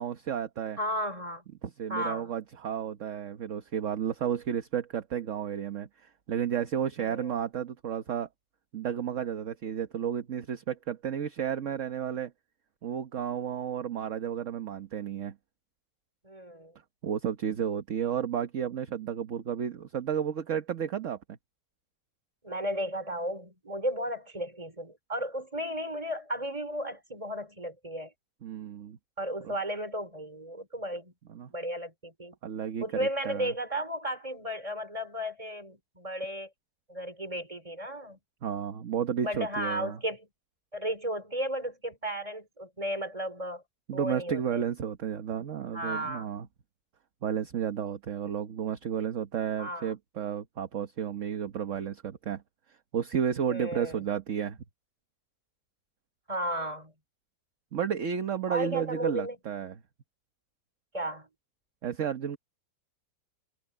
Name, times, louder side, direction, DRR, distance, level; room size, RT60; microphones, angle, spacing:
voice 1, 0.0-0.8 1.6-8.3 8.7-12.3 12.8-15.3 17.0-21.4 28.4-29.0 29.4-29.5 31.3-31.5 32.4-33.5 38.4-40.0 43.9-46.5 47.2-52.4 52.9-54.6 57.7-59.7 61.8-62.4, right 8 dB, 50° right, 1.3 m, -32 dB
voice 2, 0.8-1.4 1.9-2.3 7.0-7.3 16.2-16.7 22.4-28.1 29.2-31.1 31.5-32.4 32.8-36.5 36.9-38.2 39.2-40.3 40.7-43.6 43.9-44.6 45.7-46.3 49.6-49.9 53.5-54.0 56.3-56.9 58.5-59.4 60.9-61.3, equal, 20° right, 3.8 m, -34 dB
omnidirectional pair, 2.0 m